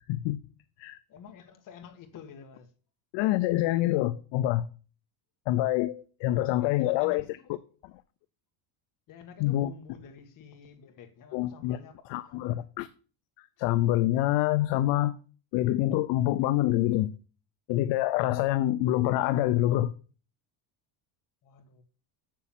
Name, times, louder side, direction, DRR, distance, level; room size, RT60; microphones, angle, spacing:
voice 1, 0.1-0.4 0.8-1.0 3.1-4.6 5.5-7.2 9.4-9.7 11.3-11.8 12.1-12.9 13.6-15.1 15.5-17.1 17.7-19.9, left 15 dB, 60° left, 0.7 m, -26 dB
voice 2, 1.1-2.7 6.6-7.6 9.1-12.7 21.4-21.8, left 7 dB, 40° left, 1.7 m, -49 dB
7.1 x 7.0 x 7.3 m
cardioid pair, 160°, 49 cm